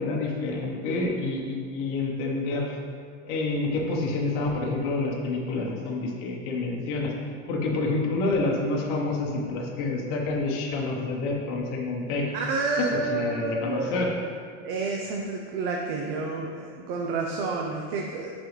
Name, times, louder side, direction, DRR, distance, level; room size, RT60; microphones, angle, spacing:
voice 1, 0.0-2.8 3.2-7.1 7.5-12.3 13.1-14.1, left 3 dB, 45° left, -2 dB, 1.0 m, -28 dB
voice 2, 12.3-14.0 14.6-18.3, right 3 dB, 50° right, 0 dB, 0.7 m, -29 dB
9.8 x 4.2 x 3.2 m, 2.2 s
supercardioid pair, 175°, 35 cm